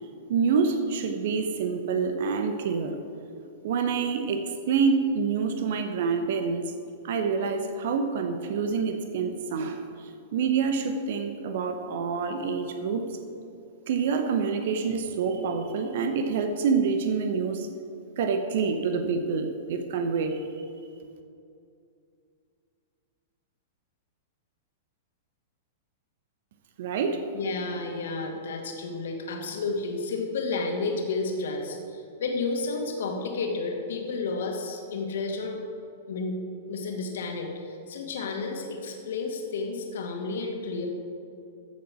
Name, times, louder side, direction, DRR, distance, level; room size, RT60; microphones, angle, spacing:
voice 1, 0.3-3.0 3.6-6.7 7.0-13.1 13.9-17.7 18.2-20.4 26.8-27.2, right 5 dB, 55° right, 7 dB, 1.0 m, -27 dB
voice 2, 27.3-35.6 36.1-36.4 36.7-40.9, left 3 dB, 60° left, 2 dB, 2.1 m, -31 dB
14.5 x 7.5 x 6.2 m, 2.5 s
figure-of-eight pair, 100°, 0 cm